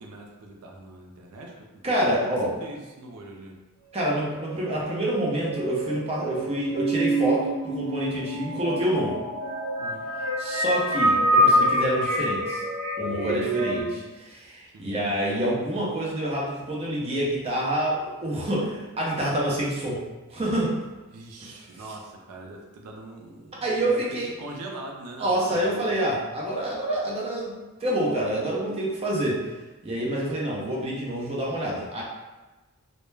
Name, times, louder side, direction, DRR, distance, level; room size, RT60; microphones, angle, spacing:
voice 1, 0.0-3.6 9.8-10.1 13.2-14.2 14.7-14.9 21.1-25.9, right 2 dB, 90° right, 0 dB, 0.4 m, -42 dB
voice 2, 1.8-2.5 3.9-9.2 10.4-12.6 13.0-20.0 20.3-20.8 21.4-21.5 23.6-24.3 25.2-29.4 29.8-32.0, right 1 dB, 30° right, -4 dB, 0.5 m, -27 dB
sound 1, 4.2-13.8, equal, 70° right, 0.9 m, -26 dB
2.2 x 2.1 x 3.1 m, 1.2 s
head